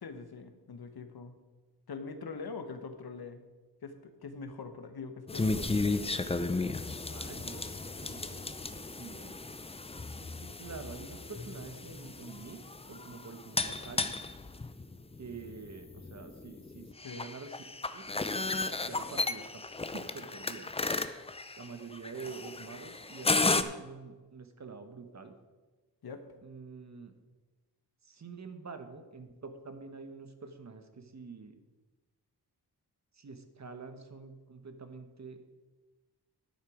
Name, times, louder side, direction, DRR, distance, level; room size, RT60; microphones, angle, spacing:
voice 1, 0.0-1.3 1.9-3.4 3.8-5.8 17.0-17.3 26.0-26.2, left 4 dB, 65° left, 7 dB, 1.2 m, -43 dB
sound 1, 5.3-23.6, left 3 dB, 15° left, 0.5 m, -34 dB
voice 2, 6.8-9.4 10.4-12.6 12.9-14.1 15.2-17.7 17.9-18.1 18.9-20.7 21.6-25.4 26.4-27.1 28.0-31.5 33.2-35.5, right 4 dB, 45° right, 8 dB, 1.2 m, -47 dB
10.5 x 8.9 x 4.9 m, 1.3 s
wide cardioid pair, 80°, 40 cm